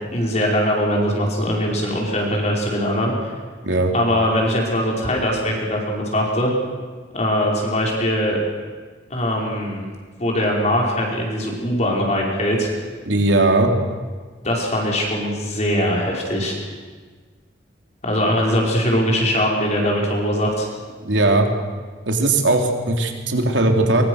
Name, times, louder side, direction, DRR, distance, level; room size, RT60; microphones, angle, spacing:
voice 1, 0.1-3.3 3.9-6.5 7.1-8.4 9.1-9.9 10.2-12.7 14.4-16.6 18.0-20.7, equal, 40° left, -1 dB, 5.3 m, -21 dB
voice 2, 13.0-13.7 21.0-21.5 22.1-24.0, right 2 dB, 85° right, 3 dB, 3.3 m, -18 dB
24.5 x 23.5 x 6.6 m, 1.5 s
head